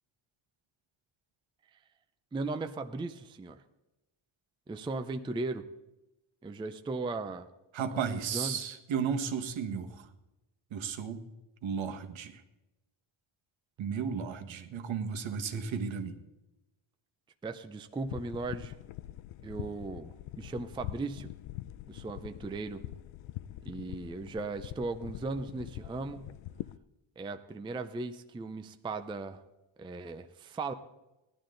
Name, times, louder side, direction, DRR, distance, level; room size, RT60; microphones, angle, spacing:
voice 1, 2.3-3.6 4.7-5.6 6.4-7.5 7.9-8.6 17.4-18.8 19.4-21.3 21.9-22.8 23.6-26.3 27.2-29.4 29.8-30.7, right 3 dB, 10° right, 9 dB, 0.4 m, -37 dB
voice 2, 7.7-10.1 10.7-11.2 11.6-12.4 13.8-16.2, right 6 dB, 70° right, 6 dB, 1.4 m, -34 dB
sound 1, 18.0-26.8, left 14 dB, 80° left, 0.6 m, -44 dB
17.5 x 12.0 x 3.8 m, 0.98 s
wide cardioid pair, 170°, 48 cm